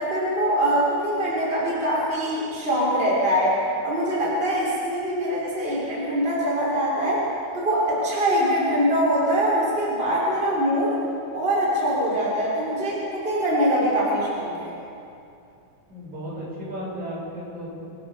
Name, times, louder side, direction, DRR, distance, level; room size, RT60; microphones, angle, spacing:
voice 1, 0.0-3.6 3.8-7.2 7.5-11.0 11.3-14.7, equal, 15° right, -7 dB, 5.9 m, -23 dB
voice 2, 15.9-17.9, equal, 50° right, -5 dB, 9.1 m, -34 dB
29.0 x 18.0 x 7.2 m, 2.6 s
omnidirectional pair, 4.3 m